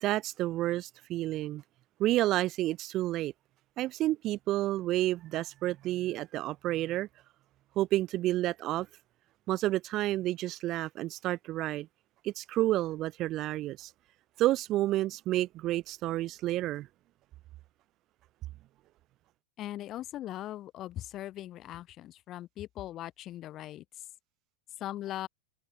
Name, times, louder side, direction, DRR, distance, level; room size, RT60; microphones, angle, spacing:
voice 1, 0.0-1.6 2.0-3.3 3.8-7.1 7.8-8.9 9.5-11.9 12.2-13.9 14.4-16.9, right 15 dB, 35° right, 0.4 m, -30 dB
voice 2, 19.6-23.8 24.8-25.3, left 13 dB, 35° left, 1.5 m, -40 dB
figure-of-eight pair, 90°, 0 cm